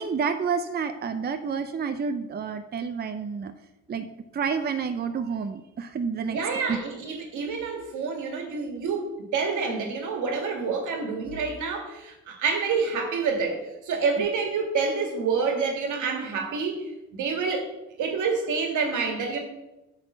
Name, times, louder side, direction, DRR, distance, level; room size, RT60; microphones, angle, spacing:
voice 1, 0.0-3.5 3.9-4.1 4.3-6.8, right 6 dB, 35° right, 9 dB, 0.6 m, -29 dB
voice 2, 6.3-17.7 18.0-19.4, right 5 dB, 80° right, 4 dB, 1.9 m, -28 dB
8.7 x 4.1 x 6.6 m, 0.98 s
cardioid pair, 90°, 30 cm